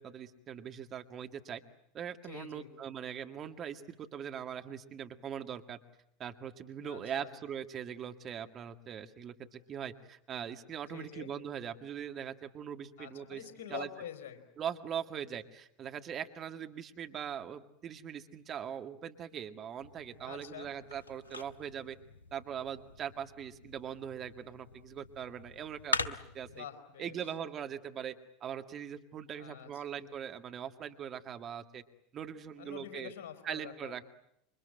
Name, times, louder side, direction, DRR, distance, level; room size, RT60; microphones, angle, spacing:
voice 1, 0.0-1.6 1.9-5.8 6.2-13.4 13.7-13.9 14.6-22.0 22.3-26.6 27.0-31.8 32.1-33.1 33.4-34.0, right 8 dB, 35° right, 7 dB, 2.0 m, -41 dB
voice 2, 2.2-2.7 6.8-7.3 10.9-11.3 13.0-14.4 20.2-20.7 26.5-27.3 29.4-30.0 32.6-34.0, left 9 dB, 60° left, 7 dB, 4.3 m, -47 dB
sound 1, 19.8-26.6, left 3 dB, 80° left, 1.1 m, -42 dB
28.0 x 24.0 x 8.8 m, 0.74 s
figure-of-eight pair, 80°, 0 cm